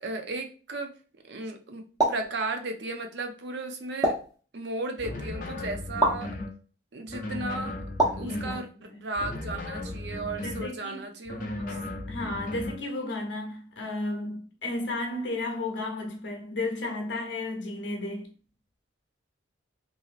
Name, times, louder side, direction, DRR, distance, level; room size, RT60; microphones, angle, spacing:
voice 1, 0.0-0.9 1.3-4.2 4.5-6.4 6.9-7.8 8.2-11.7, right 2 dB, 60° right, 0.5 m, -35 dB
sound 1, 2.0-2.3 4.0-4.4 6.0-6.2 8.0-8.3, right 1 dB, 20° right, 0.6 m, -24 dB
sound 2, 5.0-6.6 7.1-8.7 9.2-10.7 11.3-12.8, left 2 dB, 45° left, 0.4 m, -36 dB
voice 2, 8.2-9.0 10.4-11.0 11.7-18.3, left 2 dB, 65° left, 0.8 m, -33 dB
2.9 x 2.7 x 2.4 m
head